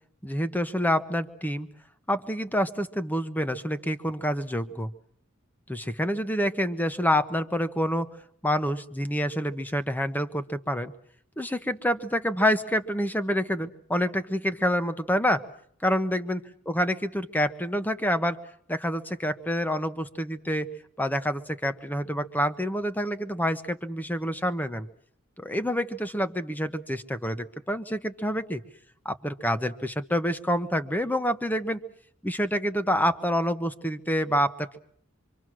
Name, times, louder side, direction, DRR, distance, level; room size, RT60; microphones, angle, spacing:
voice 1, 0.2-1.7 2.1-4.9 5.7-8.1 8.4-10.9 11.4-15.4 15.8-18.4 18.7-20.7 21.0-24.9 25.4-28.6 29.0-31.8 32.2-34.8, equal, 10° left, 10 dB, 1.3 m, -27 dB
26.5 x 25.0 x 6.3 m, 0.63 s
head